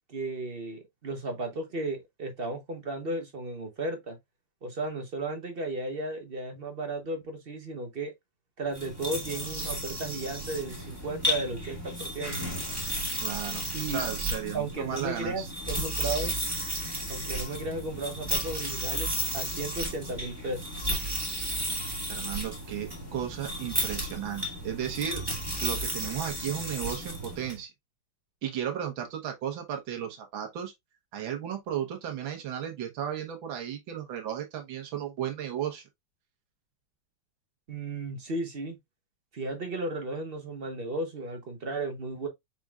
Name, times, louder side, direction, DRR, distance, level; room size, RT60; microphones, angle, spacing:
voice 1, 0.1-4.2 4.6-8.1 8.6-12.4 13.7-14.0 14.5-16.4 17.1-20.6 37.7-38.8 39.3-42.3, right 2 dB, 45° right, 0.8 m, -34 dB
sound 1, 8.7-27.6, right 1 dB, 15° right, 1.6 m, -33 dB
voice 2, 13.2-15.5 22.1-25.2 25.6-27.7 28.4-30.7 31.1-35.8, right 9 dB, 85° right, 1.9 m, -34 dB
6.0 x 3.7 x 2.3 m
omnidirectional pair, 2.1 m